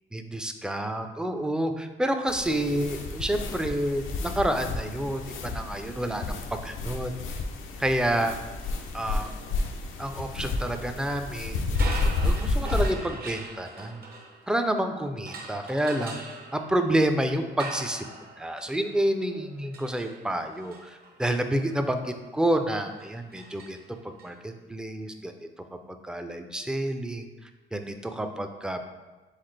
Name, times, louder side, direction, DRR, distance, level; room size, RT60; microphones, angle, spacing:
voice 1, 0.1-6.4 6.6-7.1 7.8-8.3 8.9-9.3 10.0-11.6 12.0-14.0 14.5-16.2 16.5-18.0 18.4-23.8 24.2-25.3 25.9-27.3 27.7-28.8, right 1 dB, 5° right, 6 dB, 0.3 m, -29 dB
sound 1, 2.3-12.9, left 3 dB, 85° left, 0.5 m, -31 dB
sound 2, 11.7-14.8 15.3-24.3, right 3 dB, 50° right, 0.7 m, -42 dB
4.0 x 3.7 x 3.2 m, 1.2 s
cardioid pair, 90°, 20 cm